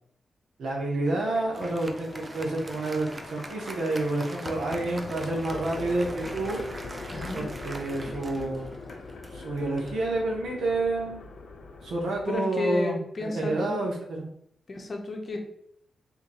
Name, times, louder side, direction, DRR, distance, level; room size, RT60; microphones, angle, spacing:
voice 1, 0.6-6.6 7.3-8.7 9.3-11.2 11.8-14.3, right 2 dB, 85° right, -1 dB, 1.0 m, -29 dB
sound 1, 1.0-12.3, left 3 dB, 85° left, 0.5 m, -41 dB
Applause, 1.0-10.8, right 2 dB, 30° right, 0.4 m, -43 dB
voice 2, 7.1-7.4 12.3-13.8 14.7-15.4, left 2 dB, 45° left, 2 dB, 0.8 m, -32 dB
2.9 x 2.7 x 4.0 m, 0.69 s
cardioid pair, 90°, 0 cm